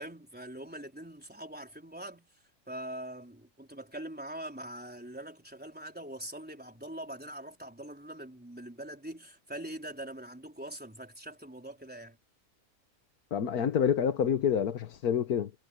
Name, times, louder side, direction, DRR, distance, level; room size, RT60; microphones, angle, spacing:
voice 1, 0.0-2.3 2.7-12.2, right 1 dB, 5° right, 4.3 m, -43 dB
voice 2, 13.3-15.5, left 8 dB, 85° left, 1.6 m, -27 dB
omnidirectional pair, 1.6 m